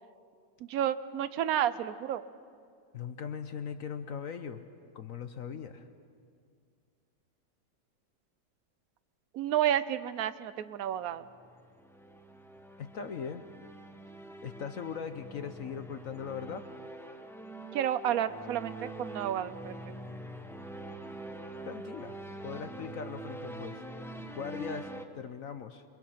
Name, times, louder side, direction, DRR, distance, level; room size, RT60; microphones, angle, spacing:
voice 1, 0.7-2.2 9.3-11.3 17.7-19.8, right 10 dB, 60° right, 14 dB, 1.1 m, -31 dB
voice 2, 2.9-4.6 4.9-5.8 12.8-13.4 14.4-16.7 21.6-23.8 24.3-25.8, left 7 dB, 55° left, 9 dB, 1.1 m, -40 dB
sound 1, 11.2-25.1, right 1 dB, ahead, 0.6 m, -44 dB
28.5 x 23.5 x 5.8 m, 2.2 s
omnidirectional pair, 1.9 m